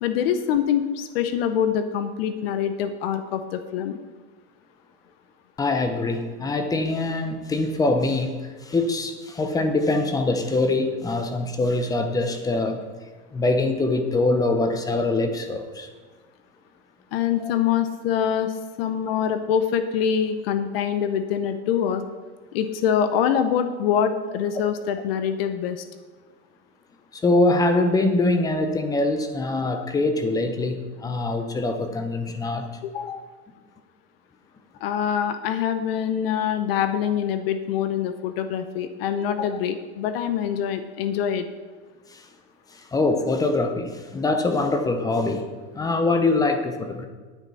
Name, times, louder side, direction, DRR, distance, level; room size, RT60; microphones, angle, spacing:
voice 1, 0.0-4.0 17.1-22.0 22.5-25.8 32.8-33.2 34.8-41.5, left 8 dB, 60° left, 10 dB, 0.9 m, -25 dB
voice 2, 5.6-12.8 13.3-15.9 17.4-17.5 27.1-32.8 42.1-42.3 42.7-45.5 45.7-47.1, left 2 dB, 10° left, 7 dB, 0.7 m, -23 dB
10.0 x 9.2 x 5.5 m, 1.4 s
supercardioid pair, 155°, 34 cm